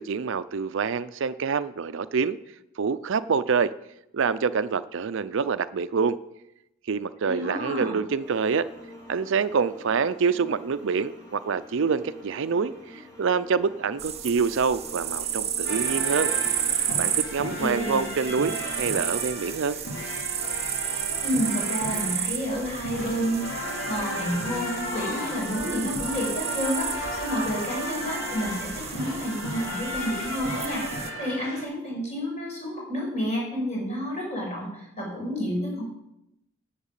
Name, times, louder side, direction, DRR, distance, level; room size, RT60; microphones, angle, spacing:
voice 1, 0.0-2.4 2.8-3.7 4.1-6.2 6.9-8.7 9.1-16.3 17.0-19.8, right 5 dB, 65° right, 14 dB, 0.5 m, -26 dB
voice 2, 7.2-8.0 17.6-18.1 21.2-35.8, equal, 35° left, -2 dB, 5.6 m, -30 dB
sound 1, 8.2-19.2, left 1 dB, 15° left, 2.3 m, -47 dB
sound 2, 14.0-31.1, right 9 dB, 30° right, 0.8 m, -32 dB
sound 3, 15.7-31.6, left 1 dB, 70° left, 3.4 m, -34 dB
10.5 x 8.1 x 7.4 m, 0.84 s
head